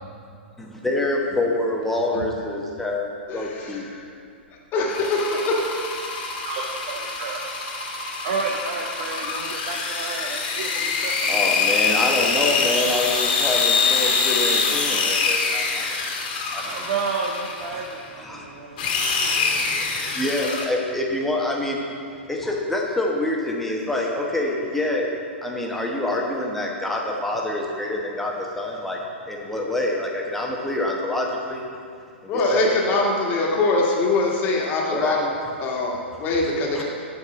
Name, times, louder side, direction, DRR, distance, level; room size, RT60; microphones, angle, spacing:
voice 1, 0.6-3.9 11.3-16.0 16.5-16.8 18.2-21.8 22.3-25.1 25.4-29.0 29.3-31.6 32.2-32.9 34.9-35.2 36.8-36.9, left 2 dB, 5° left, -2 dB, 1.1 m, -26 dB
voice 2, 3.3-4.0 4.7-6.0 32.3-35.3 35.6-36.8, left 2 dB, 30° left, -2 dB, 1.6 m, -23 dB
sound 1, 4.9-18.0 18.8-20.7, left 4 dB, 50° left, 1.6 m, -25 dB
voice 3, 6.4-7.5 8.2-11.5 12.6-12.7 12.9-13.1 16.6-18.9 19.2-20.1, right 4 dB, 50° right, 0 dB, 0.8 m, -31 dB
9.6 x 4.7 x 5.9 m, 2.4 s
figure-of-eight pair, 110°, 6 cm